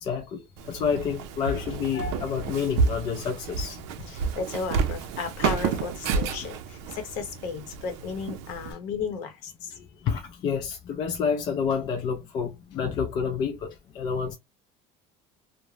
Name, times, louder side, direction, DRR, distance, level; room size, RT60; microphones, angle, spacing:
voice 1, 0.0-3.8 9.7-14.4, left 6 dB, 30° left, 0.4 m, -29 dB
Walk footsteps, 0.6-8.7, right 5 dB, 85° right, 0.5 m, -30 dB
voice 2, 4.1-9.7, left 6 dB, 60° left, 0.7 m, -34 dB
2.4 x 2.1 x 3.1 m
cardioid pair, 175°, 14 cm